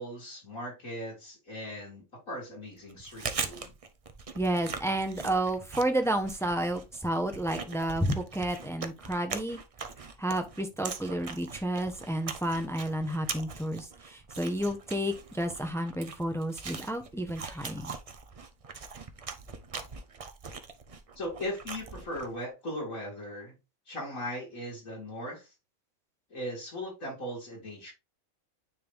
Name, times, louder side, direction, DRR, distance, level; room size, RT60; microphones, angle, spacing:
voice 1, 0.0-3.7 21.2-23.6 23.9-25.5 26.3-27.9, equal, 75° left, 4.1 m, -38 dB
Chewing mastication, 2.9-22.4, right 5 dB, 40° right, 0.5 m, -41 dB
voice 2, 4.3-9.6 10.2-17.9, right 1 dB, 5° left, 0.7 m, -31 dB
9.4 x 3.4 x 3.5 m
omnidirectional pair, 1.4 m